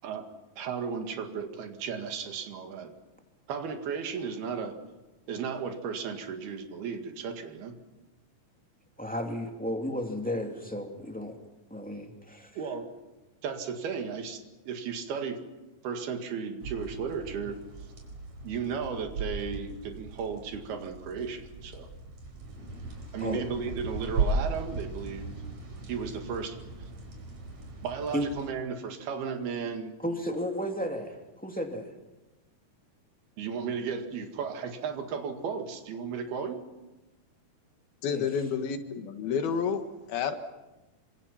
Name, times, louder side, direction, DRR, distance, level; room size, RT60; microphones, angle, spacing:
voice 1, 0.6-2.9 3.5-4.8 5.3-7.8 12.6-12.9 13.4-15.4 15.8-17.6 18.4-21.9 23.1-25.4 25.9-26.6 27.8-30.0 33.4-36.6, right 6 dB, 80° right, 5 dB, 3.9 m, -35 dB
voice 2, 9.0-11.3 11.7-12.5 23.2-23.5 28.1-28.3 30.0-31.9 38.1-38.2, equal, 5° left, 2 dB, 1.8 m, -33 dB
sound 1, 16.6-28.5, right 3 dB, 50° right, 5.7 m, -37 dB
voice 3, 38.0-39.8 40.1-40.4, left 6 dB, 75° left, 7 dB, 3.5 m, -29 dB
27.5 x 26.0 x 5.8 m, 1.1 s
omnidirectional pair, 4.4 m